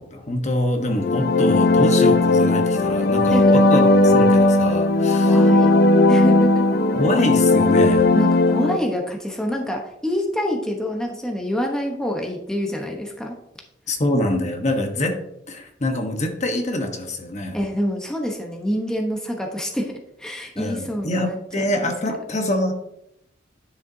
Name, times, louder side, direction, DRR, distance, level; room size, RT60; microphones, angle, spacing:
voice 1, 0.0-5.4 6.9-8.1 13.9-15.2 15.5-17.6 20.6-22.7, left 1 dB, 40° left, 3 dB, 1.1 m, -25 dB
sound 1, 0.9-8.8, left 2 dB, 60° left, 0.5 m, -16 dB
voice 2, 5.2-5.7 6.1-6.6 8.1-13.3 15.1-15.2 17.5-21.9, equal, 5° left, 0 dB, 1.0 m, -26 dB
10.5 x 6.7 x 2.7 m, 0.79 s
head